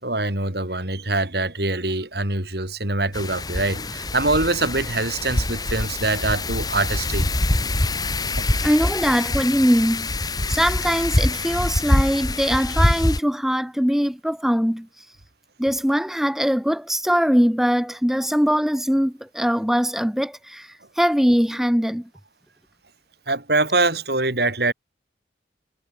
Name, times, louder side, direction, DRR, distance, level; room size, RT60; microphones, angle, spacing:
voice 1, 0.0-7.3 8.4-8.5 23.3-24.7, right 2 dB, 60° right, 4.4 m, -24 dB
Wind, 3.1-13.2, left 2 dB, 20° left, 1.3 m, -24 dB
voice 2, 8.6-10.1 10.5-14.9 15.6-22.1, equal, ahead, 0.7 m, -21 dB
head